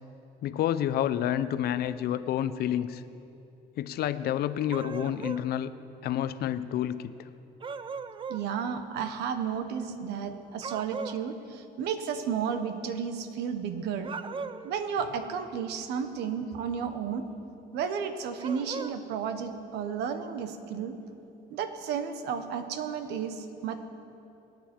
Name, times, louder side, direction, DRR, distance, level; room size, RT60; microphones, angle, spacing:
voice 1, 0.4-3.0 3.8-5.7 6.0-7.1, left 11 dB, 70° left, 14 dB, 0.7 m, -29 dB
sound 1, 4.7-5.5 7.6-8.5 10.6-11.2 14.0-14.7 18.4-19.0, right 5 dB, 30° right, 0.6 m, -38 dB
voice 2, 8.3-14.1 14.6-17.3 17.7-20.9 21.5-23.8, right 7 dB, 85° right, 8 dB, 1.3 m, -33 dB
26.0 x 9.4 x 4.5 m, 2.8 s
cardioid pair, 110°, 17 cm